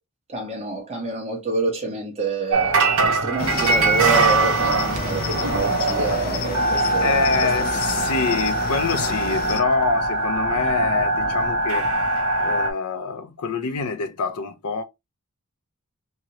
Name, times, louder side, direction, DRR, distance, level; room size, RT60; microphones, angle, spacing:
voice 1, 0.3-2.8 3.0-7.5, right 3 dB, 30° right, 1.1 m, -28 dB
sound 1, 2.5-12.7, right 3 dB, 65° right, 0.7 m, -22 dB
Cricket, 3.4-9.6, left 5 dB, 40° left, 0.4 m, -29 dB
voice 2, 7.0-11.9 12.4-14.8, left 5 dB, 85° left, 0.5 m, -26 dB
2.9 x 2.6 x 2.9 m
head